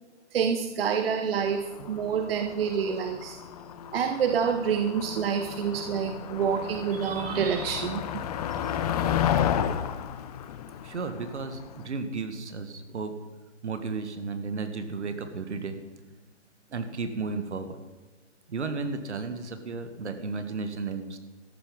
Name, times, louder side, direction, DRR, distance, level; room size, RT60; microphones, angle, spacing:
voice 1, 0.3-3.4 3.9-8.0 8.6-8.7, right 7 dB, 55° right, 5 dB, 1.1 m, -27 dB
Motor vehicle (road), 1.5-11.8, left 9 dB, 35° left, 0.8 m, -32 dB
voice 2, 10.8-13.1 13.6-15.8 16.7-17.8 18.5-21.2, right 4 dB, 70° right, 8 dB, 2.0 m, -33 dB
13.5 x 12.0 x 5.4 m, 1.2 s
hypercardioid pair, 140°, 36 cm